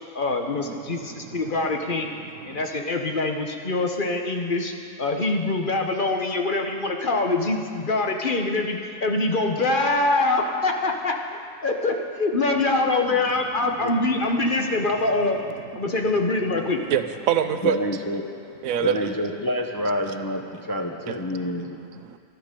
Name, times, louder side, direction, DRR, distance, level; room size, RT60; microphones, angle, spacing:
voice 1, 0.1-2.1 2.4-4.7 5.0-15.4 15.7-16.8, left 2 dB, 40° left, 3 dB, 1.1 m, -24 dB
voice 2, 0.7-1.7 2.4-2.6 13.6-13.7 15.9-16.0 16.9-17.8 18.6-19.1 21.4-22.2, right 9 dB, 85° right, 10 dB, 1.1 m, -27 dB
voice 3, 17.6-18.2 18.8-20.4 20.7-21.8, left 1 dB, 25° left, 2 dB, 0.5 m, -27 dB
12.5 x 12.0 x 6.8 m, 2.4 s
omnidirectional pair, 1.4 m